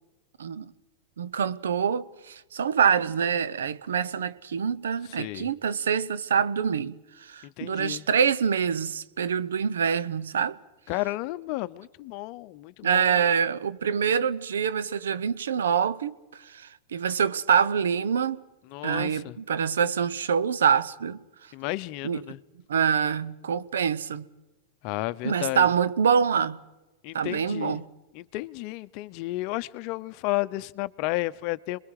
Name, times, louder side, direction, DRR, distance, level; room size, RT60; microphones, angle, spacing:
voice 1, 0.4-0.7 1.2-10.6 12.8-16.1 16.5-18.4 18.8-21.2 22.0-22.2 22.7-24.3 25.2-26.6 27.1-27.9, right 7 dB, 90° right, 0.8 m, -25 dB
voice 2, 5.0-5.5 7.4-8.1 10.9-13.2 18.7-19.4 21.5-22.4 24.8-25.7 27.0-27.8 28.1-31.8, left 19 dB, 50° left, 0.8 m, -32 dB
28.0 x 21.5 x 4.9 m
hypercardioid pair, 120°, 0 cm